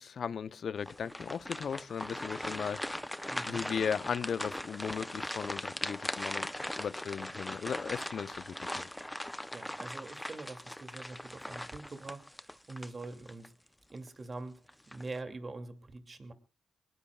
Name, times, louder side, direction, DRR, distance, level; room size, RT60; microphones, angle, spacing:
voice 1, 0.0-3.1 3.5-6.5 6.8-8.9, left 7 dB, 60° left, 0.7 m, -37 dB
sound 1, 0.8-13.5 13.9-14.1 14.7-15.2, left 1 dB, 10° left, 0.7 m, -40 dB
voice 2, 3.3-3.7 9.5-13.5 13.9-16.3, right 3 dB, 40° right, 2.6 m, -44 dB
23.0 x 19.0 x 2.4 m
hypercardioid pair, 50°, 0 cm